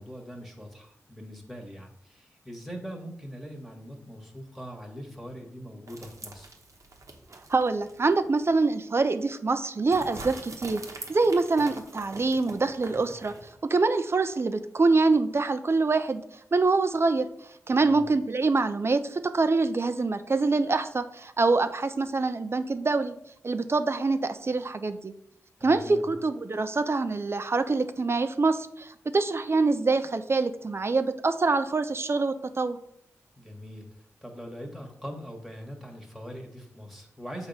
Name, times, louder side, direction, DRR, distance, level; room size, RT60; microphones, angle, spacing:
voice 1, 0.0-6.5 17.7-18.1 25.6-26.1 33.4-33.9 34.2-37.5, equal, ahead, 1 dB, 1.4 m, -42 dB
sound 1, 5.9-8.1 8.5-8.6 9.9-13.5, right 2 dB, 65° right, 1.0 m, -44 dB
voice 2, 7.5-10.8 11.1-13.3 13.6-16.2 16.5-17.3 17.7-23.1 23.4-25.1 25.6-32.8, right 3 dB, 45° right, 10 dB, 0.5 m, -25 dB
6.5 x 3.0 x 5.3 m, 0.75 s
cardioid pair, 45°, 6 cm